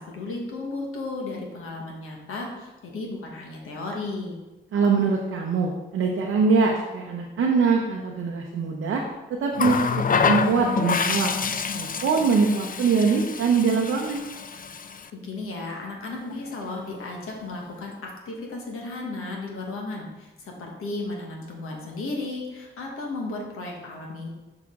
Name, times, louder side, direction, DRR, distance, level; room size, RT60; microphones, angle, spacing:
voice 1, 0.0-4.4 15.1-24.3, left 2 dB, 90° left, 0 dB, 1.2 m, -34 dB
voice 2, 4.7-9.0 9.3-11.4 11.7-14.3, right 4 dB, 90° right, 0 dB, 0.6 m, -23 dB
Water tap faucet, 9.5-15.1 16.3-16.5, left 6 dB, 40° left, 0.4 m, -27 dB
6.3 x 4.8 x 3.6 m, 1.1 s
supercardioid pair, 40°, 21 cm